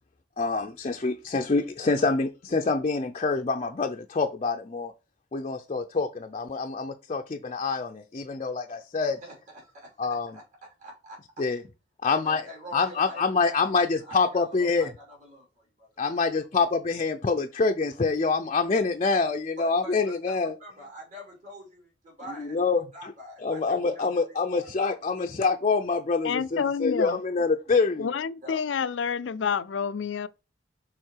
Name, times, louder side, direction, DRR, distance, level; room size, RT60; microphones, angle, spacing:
voice 1, 0.4-4.9 5.3-9.2 10.0-10.4 11.4-11.6 12.0-12.4 12.7-14.9 16.0-20.5 22.4-22.9 23.4-28.1, left 4 dB, 35° left, 0.5 m, -26 dB
voice 2, 9.2-11.4 12.0-16.4 19.6-25.1 28.4-28.6, equal, 45° right, 3.1 m, -46 dB
voice 3, 26.2-27.2 28.0-30.3, left 6 dB, 90° left, 0.4 m, -28 dB
6.6 x 3.6 x 4.6 m
head